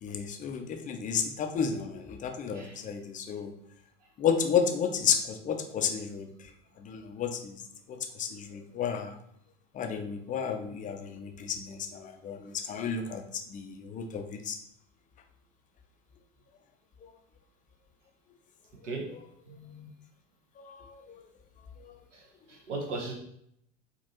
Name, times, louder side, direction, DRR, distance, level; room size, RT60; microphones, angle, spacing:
voice 1, 0.0-3.5 4.2-6.5 6.8-7.6 7.9-9.2 9.7-14.6 17.0-17.1 20.6-21.2 21.8-22.0, left 7 dB, 20° left, 5 dB, 0.5 m, -32 dB
voice 2, 19.5-19.9 22.1-22.2 22.5-23.1, right 3 dB, 70° right, 1 dB, 1.0 m, -37 dB
4.9 x 2.6 x 2.8 m, 0.71 s
figure-of-eight pair, 75°, 37 cm